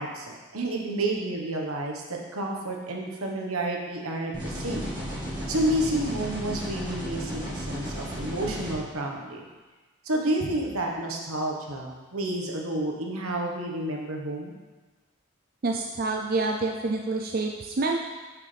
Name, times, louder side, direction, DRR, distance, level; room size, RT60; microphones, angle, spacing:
voice 1, 0.0-4.9 5.5-9.4 10.0-14.5, right 1 dB, 80° right, 0 dB, 1.3 m, -30 dB
sound 1, 4.3-8.7, equal, 20° right, 2.1 m, -34 dB
voice 2, 15.6-18.0, right 3 dB, 40° right, 2 dB, 0.4 m, -27 dB
8.9 x 6.7 x 3.4 m, 1.3 s
head